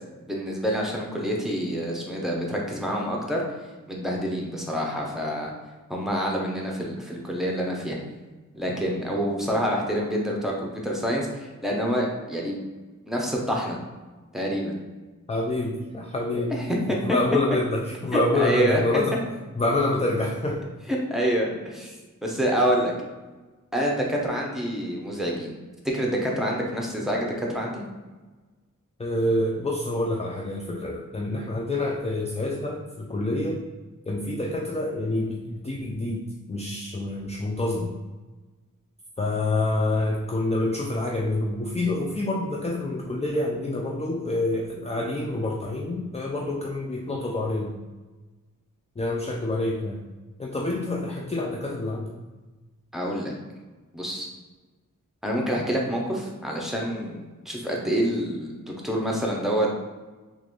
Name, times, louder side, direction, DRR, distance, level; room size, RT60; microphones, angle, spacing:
voice 1, 0.3-3.4 3.9-5.5 5.9-8.0 8.5-12.6 13.1-13.8 14.3-14.8 16.3-17.0 18.1-18.8 20.9-22.0 22.2-22.9 23.7-25.6 25.9-27.8 52.9-53.3 53.9-54.3 55.2-59.8, equal, ahead, -2 dB, 0.8 m, -27 dB
voice 2, 15.3-16.5 16.9-19.2 19.6-20.6 29.0-33.6 34.1-37.9 39.2-47.7 49.0-50.1 50.4-52.1, left 2 dB, 20° left, 0 dB, 0.3 m, -27 dB
3.8 x 2.5 x 3.2 m, 1.2 s
wide cardioid pair, 45°, 32 cm